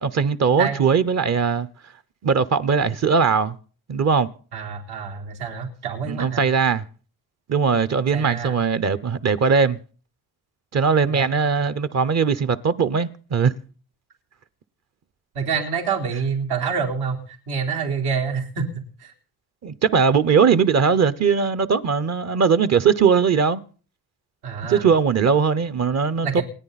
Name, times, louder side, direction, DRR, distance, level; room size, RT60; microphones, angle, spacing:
voice 1, 0.0-1.7 2.2-3.6 3.9-4.3 6.0-6.8 7.5-9.8 10.7-13.5 19.6-23.6 24.7-26.4, right 6 dB, 40° right, 0.8 m, -20 dB
voice 2, 4.5-6.4 8.1-8.6 11.1-11.3 15.3-18.7 19.0-19.1 24.4-24.9 26.2-26.4, right 6 dB, 80° right, 4.0 m, -27 dB
28.0 x 10.0 x 4.1 m
cardioid pair, 135°, 39 cm